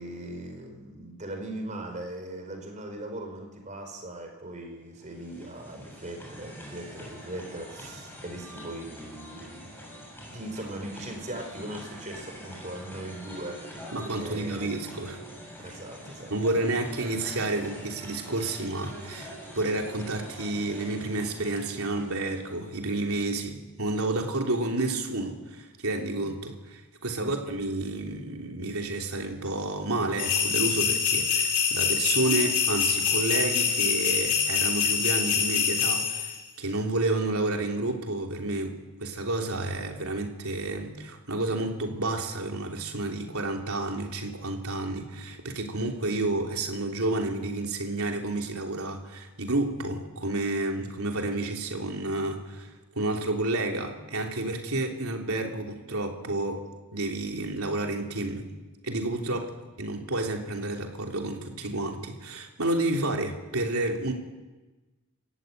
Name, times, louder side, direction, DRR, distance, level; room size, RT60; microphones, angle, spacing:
voice 1, 0.0-9.8 10.3-13.8 14.1-14.8 15.6-16.3 27.2-27.3 59.3-59.4, right 1 dB, 35° right, 4 dB, 4.7 m, -39 dB
sound 1, 4.9-22.9, equal, 10° left, 7.4 m, -44 dB
voice 2, 13.9-15.2 16.3-36.3 36.6-56.6 56.9-58.5 58.8-59.5 59.8-64.1, right 2 dB, 85° right, 2 dB, 3.3 m, -30 dB
sound 2, 30.2-36.4, left 7 dB, 60° left, 5.0 m, -25 dB
27.5 x 15.0 x 9.2 m, 1.2 s
head